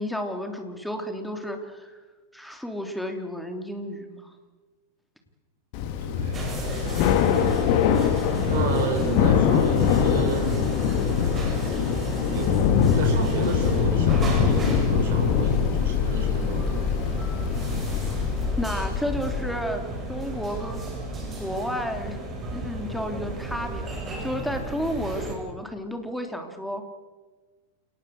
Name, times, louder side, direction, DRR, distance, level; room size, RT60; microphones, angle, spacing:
voice 1, 0.0-2.0 2.3-4.3 18.6-21.0 21.3-22.2 22.5-26.8, equal, ahead, 5 dB, 3.2 m, -32 dB
Thunder / Rain, 5.7-18.6, left 8 dB, 45° left, 2.3 m, -23 dB
voice 2, 6.0-7.4 8.5-10.6 12.3-16.9, right 5 dB, 55° right, 3 dB, 6.7 m, -32 dB
sound 1, 6.3-25.3, right 2 dB, 20° right, 7.0 m, -33 dB
sound 2, 14.1-19.4, left 7 dB, 25° left, 2.3 m, -30 dB
29.0 x 18.5 x 6.6 m, 1.3 s
figure-of-eight pair, 90°, 0 cm